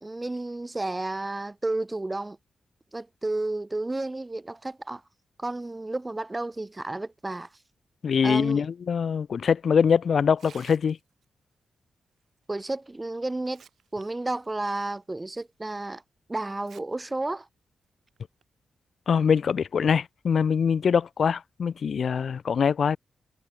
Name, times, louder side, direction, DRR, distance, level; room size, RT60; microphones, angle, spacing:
voice 1, 0.0-2.4 2.9-5.0 5.4-7.5 8.2-8.6 12.5-13.6 13.9-16.0 16.3-17.5, right 2 dB, 15° right, 0.9 m, -32 dB
voice 2, 8.0-11.0 19.1-23.0, left 6 dB, 55° left, 0.5 m, -23 dB
Tearing, 10.3-11.3 12.7-12.8 13.3-14.0 14.4-14.5 15.2-15.3 16.5-16.8 17.2-17.3 18.2-18.4, right 7 dB, 65° right, 3.5 m, -53 dB
wide cardioid pair, 120°, 0 cm